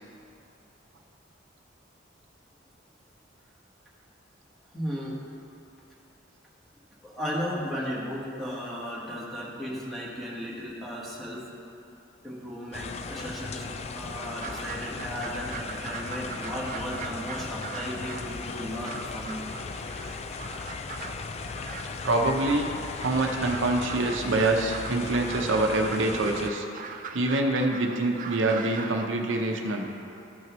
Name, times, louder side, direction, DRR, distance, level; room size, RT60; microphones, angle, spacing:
voice 1, 4.7-5.2 7.0-11.5 12.2-19.4, equal, ahead, -6 dB, 1.5 m, -35 dB
sound 1, 12.7-26.5, left 4 dB, 35° left, 0.3 m, -37 dB
sound 2, 14.4-29.1, right 5 dB, 45° right, 0.4 m, -41 dB
voice 2, 22.0-22.7 23.0-26.7 27.1-29.9, right 2 dB, 80° right, 2 dB, 0.7 m, -25 dB
13.5 x 6.0 x 3.1 m, 2.7 s
head